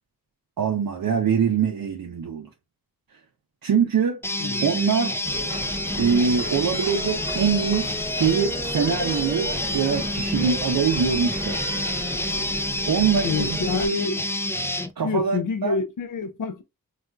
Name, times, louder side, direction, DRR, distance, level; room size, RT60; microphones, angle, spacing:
voice 1, 0.6-2.5 3.6-4.2 4.6-5.2 6.0-11.6 12.9-13.6 15.0-15.8, right 6 dB, 70° right, 0.5 m, -23 dB
sound 1, 4.2-14.9, left 1 dB, 10° left, 0.3 m, -28 dB
Boat Water vehicle, 5.2-13.9, right 1 dB, 15° right, 1.0 m, -35 dB
voice 2, 13.2-14.2 15.0-16.6, left 3 dB, 60° left, 0.5 m, -27 dB
4.1 x 2.3 x 2.3 m
wide cardioid pair, 85°, 36 cm